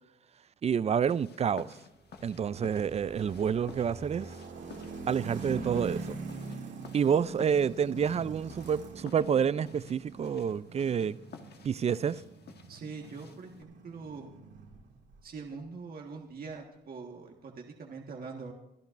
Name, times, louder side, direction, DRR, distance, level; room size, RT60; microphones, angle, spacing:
voice 1, 0.6-1.8 2.2-4.4 5.1-6.2 6.9-11.2 11.6-12.2, right 7 dB, 35° right, 0.4 m, -28 dB
sound 1, 1.0-13.6, left 5 dB, 55° left, 1.4 m, -53 dB
sound 2, 2.1-15.3, right 4 dB, 65° right, 2.3 m, -44 dB
voice 2, 12.7-14.3 15.2-18.5, right 4 dB, 50° right, 1.5 m, -43 dB
24.0 x 11.5 x 2.6 m
cardioid pair, 90°, 20 cm